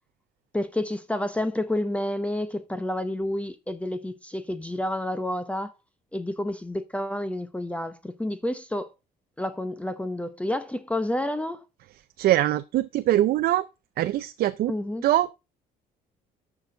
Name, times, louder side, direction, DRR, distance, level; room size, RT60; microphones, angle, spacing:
voice 1, 0.5-5.7 6.1-8.9 9.4-11.6 14.7-15.0, left 1 dB, 5° left, 0.8 m, -29 dB
voice 2, 12.2-13.7 14.0-14.7 15.0-15.3, right 14 dB, 65° right, 0.5 m, -23 dB
13.0 x 6.0 x 3.8 m
cardioid pair, 110°, 17 cm